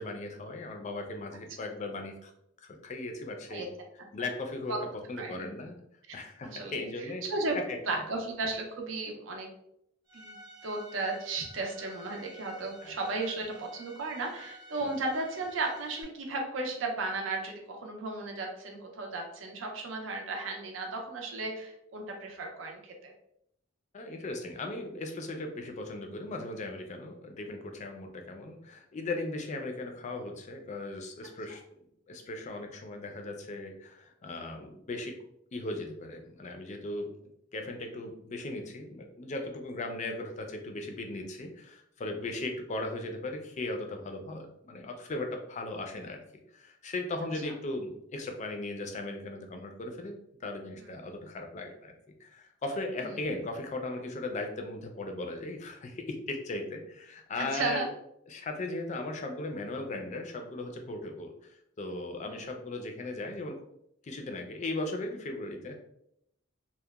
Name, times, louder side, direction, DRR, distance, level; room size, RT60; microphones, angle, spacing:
voice 1, 0.0-2.3 2.6-3.6 4.1-4.8 5.1-5.8 6.1-7.3 7.5-7.8 12.8-12.9 14.8-14.9 23.9-31.6 32.1-35.2 35.5-37.1 37.5-46.2 46.5-50.2 50.4-51.9 52.2-57.9 58.3-63.6 64.0-65.8, left 2 dB, 35° left, 4 dB, 0.4 m, -37 dB
voice 2, 6.1-7.6 7.9-9.5 10.1-10.3 10.6-23.1 50.8-50.9 53.0-53.1 57.4-57.9 62.2-62.4, right 3 dB, 75° right, 1 dB, 0.5 m, -35 dB
Bowed string instrument, 10.1-16.0, equal, 15° right, 0.6 m, -51 dB
2.8 x 2.1 x 2.2 m, 0.77 s
head